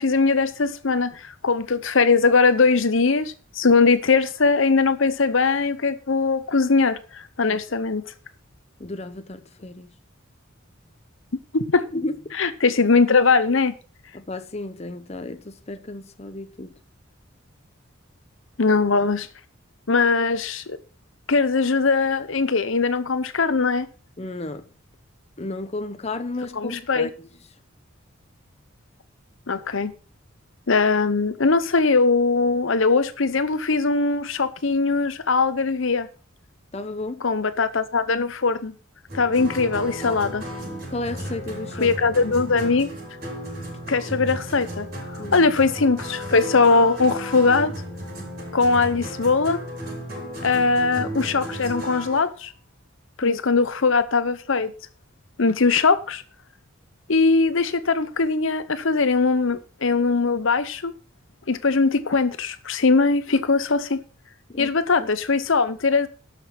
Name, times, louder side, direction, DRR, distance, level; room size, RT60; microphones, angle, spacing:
voice 1, 0.0-8.0 11.5-11.9 12.4-13.7 18.6-19.3 19.9-20.8 21.3-23.9 26.6-27.1 29.5-29.9 30.7-36.1 37.2-38.7 39.1-40.4 41.8-42.9 43.9-44.9 45.3-47.7 48.5-49.6 50.4-52.5 53.2-54.7 55.4-56.2 57.1-60.9 61.5-64.0 64.6-66.1, left 4 dB, 70° left, 0.8 m, -20 dB
voice 2, 8.8-9.9 11.9-12.4 14.1-16.8 24.2-24.7 25.4-27.3 36.7-37.3 40.9-41.9 45.2-45.4 53.2-53.4 64.5-64.7 65.0-65.1, left 2 dB, 30° left, 0.8 m, -33 dB
sound 1, 39.1-52.2, equal, 45° right, 6.2 m, -34 dB
12.5 x 6.2 x 5.9 m
head